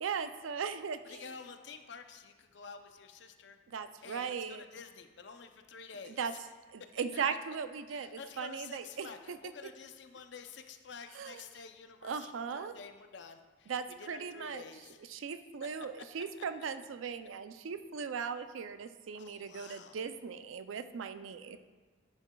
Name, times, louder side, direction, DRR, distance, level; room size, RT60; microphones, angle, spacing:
voice 1, 0.0-1.3 3.7-4.6 6.0-6.3 6.7-9.4 11.1-11.4 12.0-12.7 13.7-14.6 15.1-21.6, right 6 dB, 85° right, 11 dB, 0.4 m, -38 dB
voice 2, 1.1-3.6 4.0-6.4 7.9-13.7 14.0-15.1 19.1-20.0, left 5 dB, 60° left, 7 dB, 0.5 m, -50 dB
10.5 x 7.2 x 2.3 m, 1.3 s
head